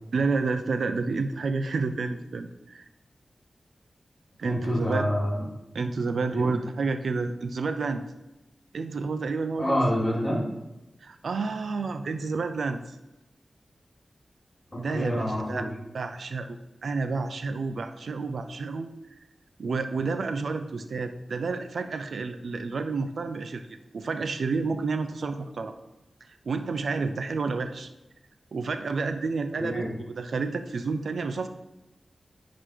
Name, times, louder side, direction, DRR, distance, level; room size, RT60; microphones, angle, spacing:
voice 1, 0.1-2.8 4.4-5.1 5.7-8.0 8.7-9.8 11.0-13.0 14.8-15.6 15.9-19.2 19.6-25.7 26.5-27.9 28.5-31.5, right 4 dB, 85° right, 9 dB, 0.5 m, -30 dB
voice 2, 4.4-5.4 6.3-6.5 9.6-10.5 14.7-15.7 29.6-29.9, equal, 15° left, -5 dB, 2.8 m, -27 dB
9.7 x 4.0 x 5.0 m, 0.94 s
wide cardioid pair, 115°, 0 cm